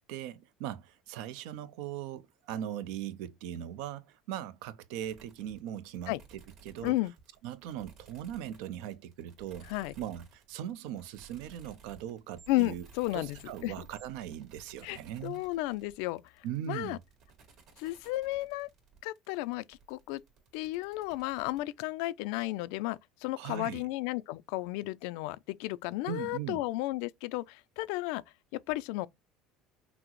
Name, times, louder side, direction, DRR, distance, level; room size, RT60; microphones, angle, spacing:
voice 1, 0.1-6.9 7.4-9.7 10.0-12.8 13.1-15.4 16.4-17.0 23.4-23.8 26.1-26.6, right 10 dB, 80° right, 0.5 m, -39 dB
sound 1, 5.0-21.6, right 5 dB, 50° right, 1.9 m, -57 dB
voice 2, 6.8-7.1 9.7-9.9 12.5-13.4 13.6-13.7 14.8-17.0 17.8-18.7 19.0-20.2 20.5-28.2 28.5-29.1, left 19 dB, 80° left, 0.3 m, -33 dB
5.8 x 2.0 x 3.0 m
cardioid pair, 130°, 0 cm